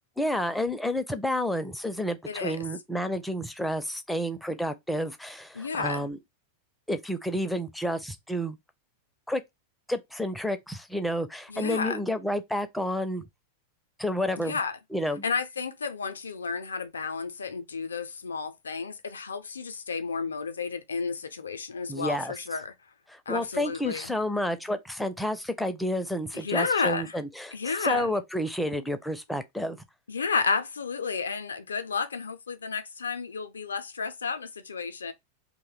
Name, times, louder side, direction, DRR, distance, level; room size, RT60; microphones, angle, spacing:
voice 1, 0.2-6.2 6.9-8.6 9.3-9.4 9.9-13.2 14.0-14.6 14.9-15.2 21.9-22.3 23.1-29.8, equal, 5° left, 0.4 m, -30 dB
voice 2, 2.3-2.6 5.5-6.1 11.5-12.0 14.4-14.8 15.2-22.7 23.3-24.1 26.3-27.1 27.5-28.1 30.1-35.1, left 5 dB, 70° left, 0.4 m, -31 dB
2.6 x 2.1 x 3.8 m
figure-of-eight pair, 90°, 0 cm